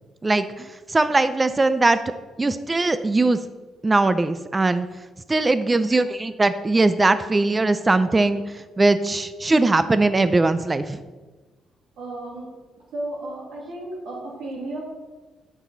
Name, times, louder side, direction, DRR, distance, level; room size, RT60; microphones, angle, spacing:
voice 1, 0.2-2.0 2.4-3.4 3.8-4.9 5.3-11.0, right 2 dB, 25° right, 12 dB, 0.4 m, -20 dB
voice 2, 12.0-12.5 12.9-14.8, right 1 dB, 80° right, -2 dB, 2.2 m, -33 dB
11.0 x 6.0 x 3.9 m, 1.2 s
cardioid pair, 90°, 0 cm